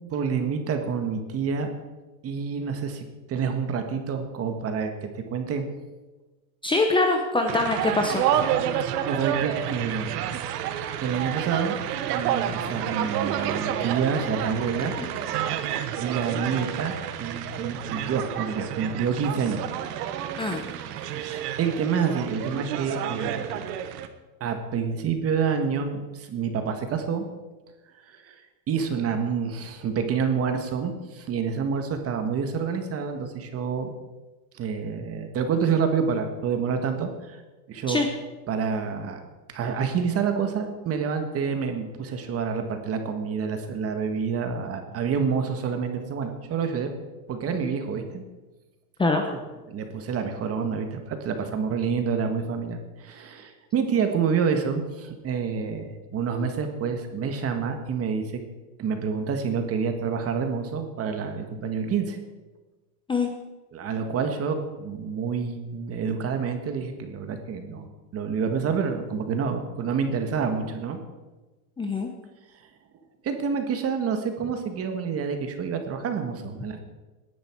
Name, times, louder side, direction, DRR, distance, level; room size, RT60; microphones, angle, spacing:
voice 1, 0.1-1.7 2.2-5.7 9.1-10.3 11.0-11.8 12.1-14.9 16.0-19.6 20.9-23.5 24.4-27.3 28.1-28.4 28.7-33.9 34.5-37.4 37.7-38.0 38.5-39.2 39.5-46.9 47.3-48.2 49.3-49.4 49.7-58.4 58.8-62.2 63.7-67.9 68.1-71.0 73.2-76.8, right 6 dB, 30° right, 6 dB, 1.7 m, -28 dB
voice 2, 6.6-8.2 15.0-15.1 20.4-20.6 37.9-38.1 49.0-49.2 63.1-63.3 71.8-72.1, left 3 dB, 10° left, 3 dB, 0.9 m, -23 dB
sound 1, 7.5-24.1, right 10 dB, 85° right, 1.3 m, -29 dB
18.5 x 10.5 x 4.7 m, 1.2 s
supercardioid pair, 145°, 46 cm